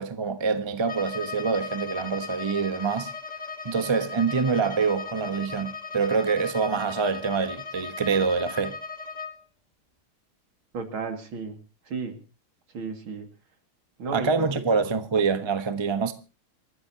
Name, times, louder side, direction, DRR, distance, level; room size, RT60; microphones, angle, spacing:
voice 1, 0.0-3.1 3.6-8.8 14.1-16.1, right 5 dB, 20° right, 0.7 m, -25 dB
Bowed string instrument, 0.8-9.4, left 5 dB, 20° left, 1.5 m, -37 dB
voice 2, 10.7-11.6 11.9-12.2 12.7-13.3 14.0-14.5, right 4 dB, 70° right, 3.2 m, -33 dB
27.5 x 13.0 x 2.9 m
omnidirectional pair, 2.3 m